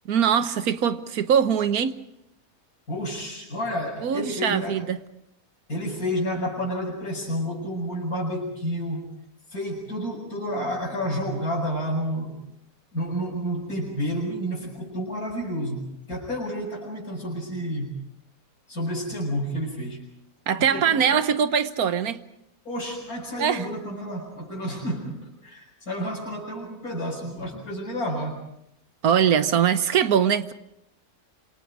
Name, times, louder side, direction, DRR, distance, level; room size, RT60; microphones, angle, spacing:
voice 1, 0.1-2.0 4.0-5.0 20.5-22.2 23.4-23.7 29.0-30.5, right 8 dB, 85° right, 1.6 m, -22 dB
voice 2, 2.9-4.8 5.7-9.2 9.5-12.4 12.9-18.0 18.7-20.0 20.7-21.1 22.6-28.5, equal, 80° left, 6.9 m, -30 dB
27.5 x 27.0 x 4.9 m
omnidirectional pair, 1.5 m